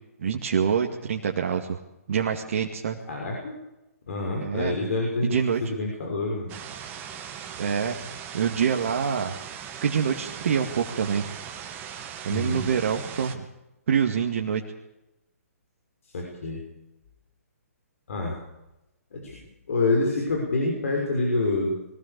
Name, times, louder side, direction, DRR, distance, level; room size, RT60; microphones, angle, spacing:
voice 1, 0.2-1.8 2.1-3.0 4.4-4.7 5.2-5.6 7.6-8.0 8.3-9.3 9.8-11.3 12.2-13.5 13.9-14.6, right 7 dB, 55° right, 2 dB, 2.2 m, -25 dB
voice 2, 3.1-3.5 4.1-5.4 5.6-6.6 12.3-12.6 16.0-16.6 18.1-18.4 19.1-19.3 19.7-21.8, left 2 dB, 60° left, 0 dB, 6.2 m, -27 dB
sound 1, 6.5-13.4, right 8 dB, 25° right, 2.2 m, -39 dB
23.0 x 18.5 x 6.9 m, 0.93 s
figure-of-eight pair, 130°, 8 cm